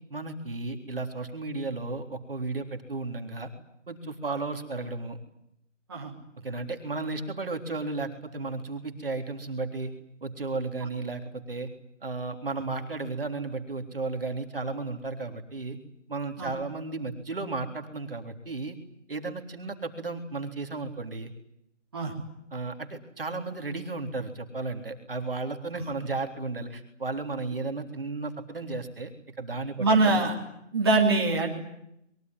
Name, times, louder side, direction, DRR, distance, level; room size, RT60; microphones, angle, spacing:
voice 1, 0.1-3.5 3.9-5.2 6.4-9.9 10.2-11.7 12.0-15.8 16.1-18.8 19.1-21.3 22.5-30.3, right 3 dB, 45° right, 5 dB, 3.7 m, -34 dB
voice 2, 29.8-30.3 30.7-31.5, right 3 dB, 20° right, -3 dB, 3.2 m, -23 dB
24.0 x 23.0 x 9.4 m, 0.75 s
figure-of-eight pair, 175°, 38 cm